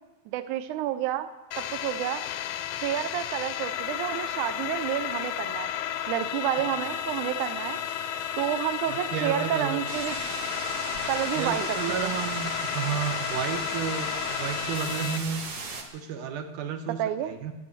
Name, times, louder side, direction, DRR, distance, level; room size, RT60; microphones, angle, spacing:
voice 1, 0.3-1.3 1.6-2.2 2.8-5.7 6.1-7.8 8.4-10.2 11.1-12.1 17.0-17.3, right 12 dB, 85° right, 11 dB, 1.7 m, -30 dB
sound 1, 1.5-15.2, left 10 dB, 80° left, 1.7 m, -32 dB
voice 2, 8.9-9.9 11.3-15.4 15.9-17.5, right 8 dB, 65° right, 7 dB, 2.4 m, -32 dB
sound 2, 9.9-15.8, right 4 dB, 50° right, 2.0 m, -36 dB
13.5 x 10.5 x 9.7 m, 1.1 s
omnidirectional pair, 4.5 m